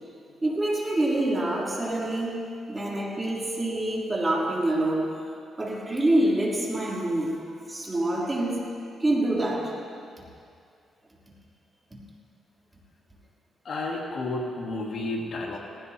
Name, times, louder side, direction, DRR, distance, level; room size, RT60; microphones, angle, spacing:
voice 1, 0.4-2.4 2.7-5.1 5.6-7.4 7.7-8.6 9.0-9.7 11.9-12.0, right 1 dB, 25° right, -4 dB, 3.1 m, -26 dB
voice 2, 13.6-15.6, left 2 dB, 60° left, -1 dB, 1.9 m, -31 dB
18.5 x 16.0 x 2.8 m, 2.3 s
cardioid pair, 80°, 0 cm